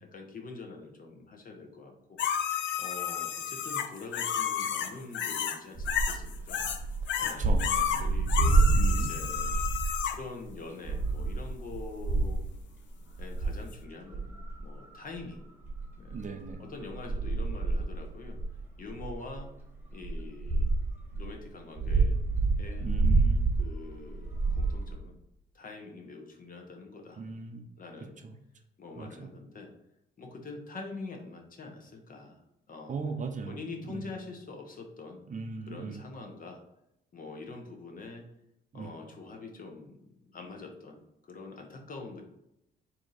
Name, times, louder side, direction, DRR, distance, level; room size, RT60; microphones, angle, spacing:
voice 1, 0.0-2.2 2.8-6.6 7.2-7.5 8.0-9.6 10.1-12.4 13.2-15.4 16.0-16.2 16.6-18.4 18.8-19.5 19.9-20.7 21.1-22.2 22.6-22.9 23.6-25.2 25.5-27.2 27.8-28.2 28.8-29.7 30.2-32.4 32.7-33.0 33.5-35.2 35.7-36.6 37.1-38.3 38.7-41.0 41.3-42.2, left 3 dB, 45° left, 3 dB, 1.0 m, -44 dB
sound 1, 2.2-5.6 5.9-6.8 7.1-10.2 13.7-13.8, left 9 dB, 70° left, 0.5 m, -31 dB
sound 2, 5.7-10.1 10.4-10.5 10.8-12.6 13.1-13.6 14.1-15.2 15.6-21.3 21.7-24.9, right 3 dB, 10° right, 1.5 m, -28 dB
voice 2, 7.2-8.1 8.8-9.1 16.1-16.7 22.8-23.4 27.2-27.7 28.2-28.3 29.0-29.3 32.9-34.1 35.3-36.0 38.7-38.9, right 4 dB, 40° right, 5 dB, 0.6 m, -39 dB
4.4 x 2.8 x 4.0 m, 0.85 s
cardioid pair, 90°, 20 cm